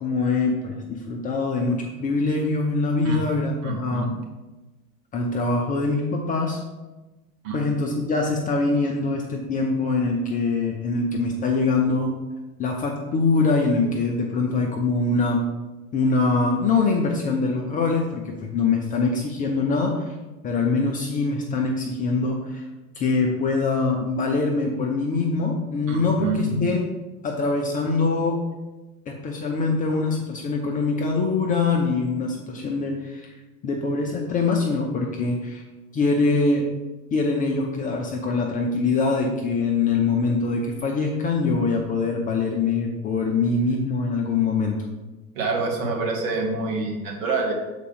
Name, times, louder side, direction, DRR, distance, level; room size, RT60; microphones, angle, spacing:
voice 1, 0.0-4.2 5.1-6.6 7.5-12.1 12.6-15.5 15.9-20.1 20.4-22.6 23.0-26.8 27.2-28.4 29.1-33.3 33.6-35.6 35.9-36.7 37.1-44.8, left 3 dB, 20° left, 1 dB, 0.5 m, -23 dB
voice 2, 3.6-4.1 7.4-7.6 25.9-26.6 45.3-47.5, right 3 dB, 55° right, 0 dB, 1.7 m, -26 dB
6.7 x 4.1 x 4.8 m, 1.1 s
figure-of-eight pair, 85°, 47 cm